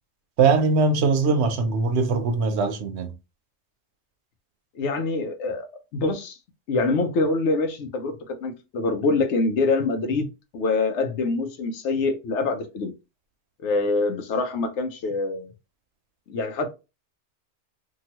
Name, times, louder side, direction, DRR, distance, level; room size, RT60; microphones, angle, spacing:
voice 1, 0.4-3.1, right 4 dB, 75° right, 0.9 m, -21 dB
voice 2, 4.7-5.7 5.9-6.4 6.7-8.1 8.4-10.3 10.5-12.9 13.6-15.5 16.3-16.7, left 3 dB, 90° left, 1.0 m, -25 dB
2.9 x 2.3 x 2.9 m
omnidirectional pair, 1.2 m